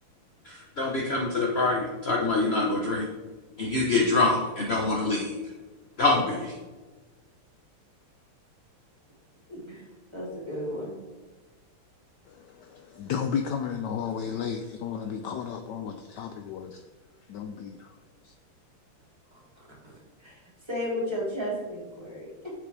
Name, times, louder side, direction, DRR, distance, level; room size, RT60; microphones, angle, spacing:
voice 1, 0.4-3.1 3.6-5.3 6.0-6.5, left 3 dB, 50° left, -2 dB, 0.7 m, -25 dB
voice 2, 9.5-9.8 10.1-10.9 19.3-22.5, equal, 10° right, -6 dB, 2.9 m, -35 dB
voice 3, 12.3-16.8 17.3-17.9 18.2-18.3, left 7 dB, 80° left, 6 dB, 0.9 m, -33 dB
9.3 x 7.4 x 3.4 m, 1.3 s
omnidirectional pair, 2.4 m